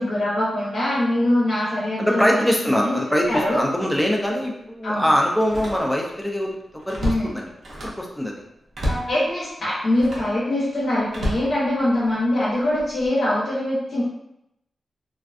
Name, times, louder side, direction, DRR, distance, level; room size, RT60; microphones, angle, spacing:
voice 1, 0.0-2.4 2.7-3.0 3.3-3.6 4.8-5.1 7.0-7.3 8.8-14.0, left 1 dB, 75° left, -10 dB, 0.8 m, -23 dB
voice 2, 2.0-6.5 6.9-7.5 7.8-8.3, equal, 5° left, -1 dB, 0.4 m, -22 dB
Slam, 3.3-3.5 3.9-4.1 5.4-6.2 6.5-8.1 8.7-9.2 9.9-10.4 11.1-12.2 12.8-13.1, equal, 65° right, 0.6 m, -30 dB
2.5 x 2.2 x 2.4 m, 0.82 s
wide cardioid pair, 95°, 0 cm